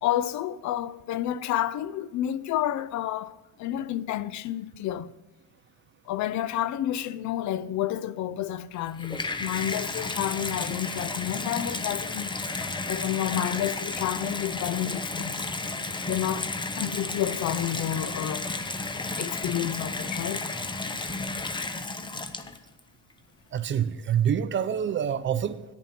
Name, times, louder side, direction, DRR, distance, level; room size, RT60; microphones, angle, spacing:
voice 1, 0.0-5.1 6.1-12.3 12.9-15.4 16.1-18.5 19.2-20.5, left 12 dB, 55° left, 0.5 m, -30 dB
Water tap faucet / Bathtub (filling or washing), 8.7-22.8 23.6-23.7, left 3 dB, 15° left, 0.6 m, -32 dB
voice 2, 23.5-25.6, right 8 dB, 35° right, 0.5 m, -26 dB
10.0 x 7.0 x 5.9 m
cardioid pair, 115°, 35 cm